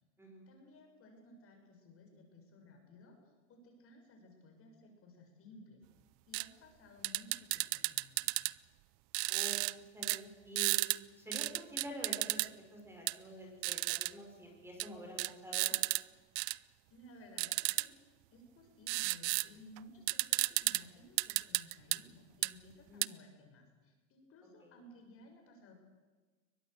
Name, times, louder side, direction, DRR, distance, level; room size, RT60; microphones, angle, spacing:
voice 1, 0.5-5.8 6.3-8.3 16.9-25.7, left 1 dB, 35° left, 3 dB, 6.9 m, -58 dB
sound 1, 6.3-6.5 7.0-8.5 9.1-9.7 10.0-10.2 10.6-11.0 11.3-12.5 13.1-13.2 13.6-14.1 14.8-14.9 15.2-16.0 16.4-16.6 17.4-17.9 18.9-19.5 19.8-19.9 20.1-20.8 21.2-22.0 22.4-22.5 23.0-23.1, right 25 dB, 50° right, 0.7 m, -33 dB
voice 2, 9.3-9.6 9.9-10.8 11.2-12.4 12.7-15.8 22.9-23.1, equal, 5° right, 1 dB, 5.7 m, -47 dB
23.0 x 20.5 x 8.2 m, 1.3 s
supercardioid pair, 125°, 37 cm